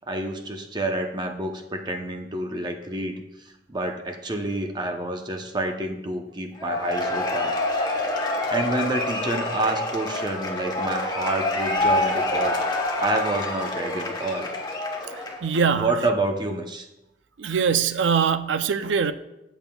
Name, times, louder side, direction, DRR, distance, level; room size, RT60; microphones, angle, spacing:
voice 1, 0.1-3.2 3.7-7.5 8.0-8.1 8.5-12.6 13.0-14.5 15.7-16.9, right 2 dB, 25° right, 4 dB, 0.8 m, -28 dB
Cheering / Applause / Crowd, 6.6-15.5, left 2 dB, 25° left, 1.1 m, -27 dB
voice 2, 15.4-15.9 17.4-19.1, right 6 dB, 90° right, 11 dB, 0.5 m, -22 dB
14.0 x 7.0 x 2.3 m, 0.93 s
head